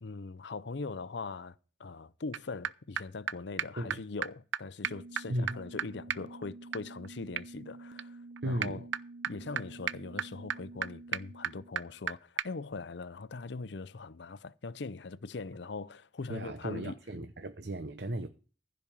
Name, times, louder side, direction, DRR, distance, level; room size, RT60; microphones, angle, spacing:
voice 1, 0.0-8.9 9.3-17.0, left 3 dB, 65° left, 0.6 m, -41 dB
sound 1, 2.3-2.4 2.6-2.7 3.0-3.1 3.3-3.4 3.6-3.7 3.9-4.0 4.2-4.3 4.5-4.6 4.8-12.1 12.4-12.5, right 8 dB, 85° right, 0.6 m, -37 dB
voice 2, 8.4-8.8 16.3-18.3, right 1 dB, 60° right, 0.9 m, -35 dB
15.5 x 5.3 x 7.3 m
head